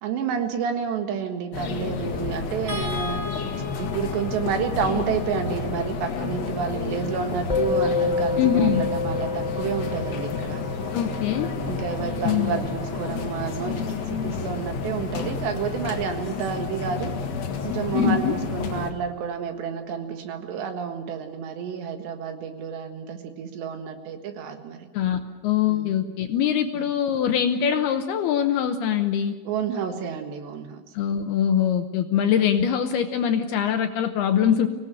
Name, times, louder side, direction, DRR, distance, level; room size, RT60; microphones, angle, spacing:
voice 1, 0.0-3.2 3.8-10.6 11.7-17.1 17.6-24.9 25.7-26.1 26.8-26.9 29.5-30.8 32.2-32.5, right 7 dB, 70° right, 6 dB, 3.7 m, -30 dB
sound 1, 1.5-18.9, left 5 dB, 55° left, 3.2 m, -30 dB
sound 2, 2.7-9.0 10.5-10.7 11.1-11.2, left 3 dB, 20° right, 5.6 m, -40 dB
Musical instrument, 7.5-17.0, left 4 dB, 20° left, 1.0 m, -31 dB
voice 2, 8.4-8.8 10.9-11.5 12.2-12.6 17.9-18.4 24.9-29.3 30.9-34.7, left 9 dB, 75° left, 7 dB, 2.5 m, -23 dB
25.0 x 18.0 x 8.9 m, 1.2 s
omnidirectional pair, 5.4 m